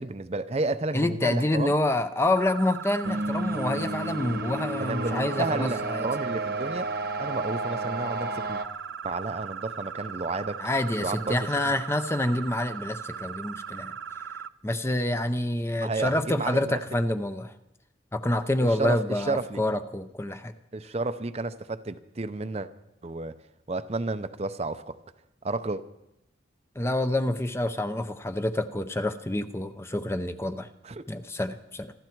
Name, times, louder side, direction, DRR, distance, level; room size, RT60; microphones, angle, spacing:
voice 1, 0.0-1.7 4.8-8.6 9.0-10.6 11.0-11.4 11.6-11.7 15.7-16.8 18.6-19.6 20.7-22.7 23.0-23.4 23.7-25.0 25.4-25.8 30.8-31.0, right 3 dB, 35° right, 11 dB, 0.6 m, -31 dB
voice 2, 0.9-6.1 10.6-13.9 14.6-17.5 18.1-20.5 26.8-30.7 31.1-31.9, left 1 dB, 15° left, 10 dB, 0.6 m, -27 dB
sound 1, 2.4-14.5, right 7 dB, 85° right, 0.6 m, -38 dB
sound 2, 3.0-8.6, right 2 dB, 55° right, 1.1 m, -32 dB
26.5 x 12.0 x 4.6 m, 0.86 s
head